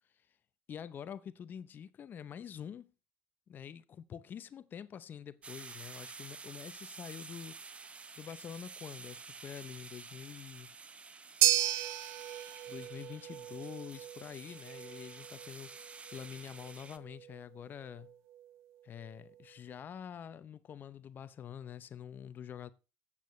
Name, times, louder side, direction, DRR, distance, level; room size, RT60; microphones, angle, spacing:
voice 1, 0.7-2.9 3.5-7.9 8.2-10.7 12.7-18.1 18.8-22.7, left 8 dB, 40° left, 0.6 m, -46 dB
sound 1, 5.4-17.0, right 4 dB, 25° right, 0.8 m, -50 dB
sound 2, 11.4-19.8, right 13 dB, 75° right, 0.7 m, -36 dB
13.0 x 8.6 x 3.1 m
supercardioid pair, 95°, 5 cm